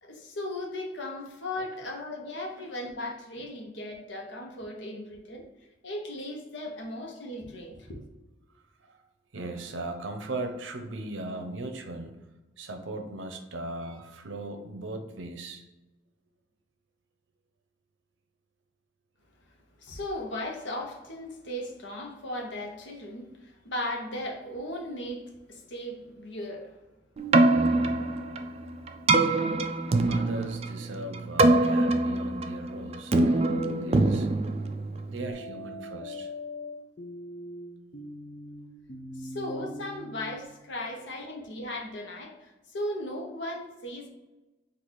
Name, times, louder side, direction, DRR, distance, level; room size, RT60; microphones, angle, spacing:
voice 1, 0.0-5.4 5.8-8.0 19.8-26.7 30.4-30.5 39.1-44.1, left 1 dB, 70° left, 1 dB, 0.9 m, -37 dB
voice 2, 9.3-12.1 12.6-15.6 29.9-34.3 35.1-36.3 41.0-41.1, right 2 dB, 75° right, 6 dB, 0.6 m, -38 dB
Keyboard (musical), 27.2-35.3, right 2 dB, 35° right, 0.3 m, -24 dB
sound 1, 33.4-34.2 35.3-40.3, left 2 dB, 35° left, 0.5 m, -41 dB
4.0 x 2.5 x 4.6 m, 1.1 s
head